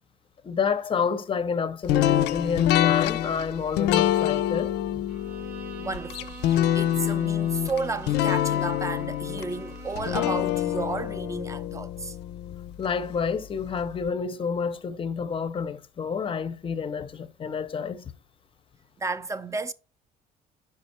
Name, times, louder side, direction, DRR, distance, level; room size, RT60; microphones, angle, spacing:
voice 1, 0.4-5.0 12.8-18.1, left 6 dB, 30° left, 0.6 m, -29 dB
sound 1, 1.9-12.9, left 12 dB, 85° left, 0.4 m, -26 dB
Bowed string instrument, 5.1-10.5, right 6 dB, 70° right, 0.8 m, -45 dB
voice 2, 5.8-12.2 19.0-19.7, right 3 dB, 20° right, 0.5 m, -33 dB
5.3 x 4.8 x 4.3 m
cardioid pair, 110°, 17 cm